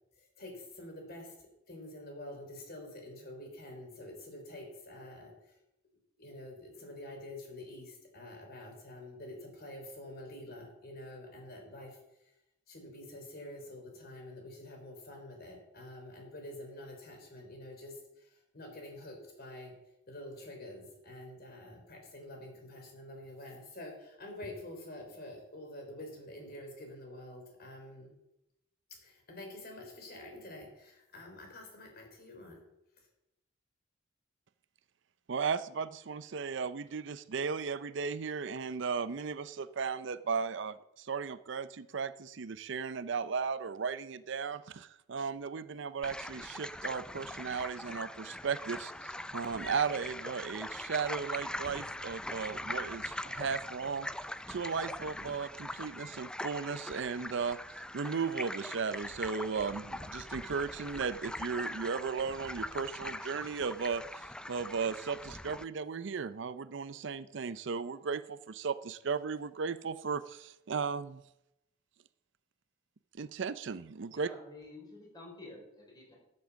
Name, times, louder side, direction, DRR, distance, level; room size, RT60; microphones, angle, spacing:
voice 1, 0.2-5.6 6.2-12.0 12.7-19.7 20.1-28.1 29.0-32.6 33.0-33.1, left 1 dB, 55° left, 2 dB, 3.8 m, -47 dB
voice 2, 35.3-54.1 54.5-71.2 73.2-74.3, right 5 dB, 65° right, 14 dB, 0.5 m, -36 dB
sound 1, 46.0-65.6, left 1 dB, 5° left, 0.4 m, -42 dB
voice 3, 74.1-76.2, left 2 dB, 20° left, -1 dB, 4.8 m, -50 dB
13.0 x 7.7 x 7.1 m, 0.86 s
head